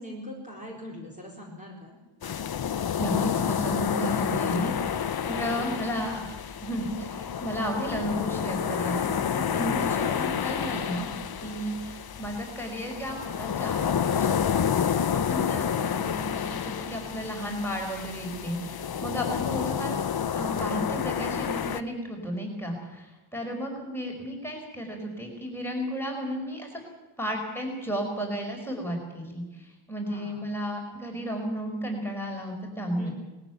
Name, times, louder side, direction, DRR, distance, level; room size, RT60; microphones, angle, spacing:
voice 1, 0.0-2.0 5.5-6.1 10.0-10.4 30.0-30.4 33.0-33.1, equal, 15° right, -3 dB, 4.4 m, -42 dB
sound 1, 2.2-21.8, left 8 dB, 50° left, 0.8 m, -29 dB
voice 2, 3.0-4.7 5.2-6.3 6.6-11.1 11.4-14.6 14.9-20.0 20.3-23.1 23.3-26.8 27.2-33.1, equal, 5° left, 0 dB, 5.1 m, -33 dB
20.0 x 15.0 x 9.3 m, 1.1 s
wide cardioid pair, 155°, 49 cm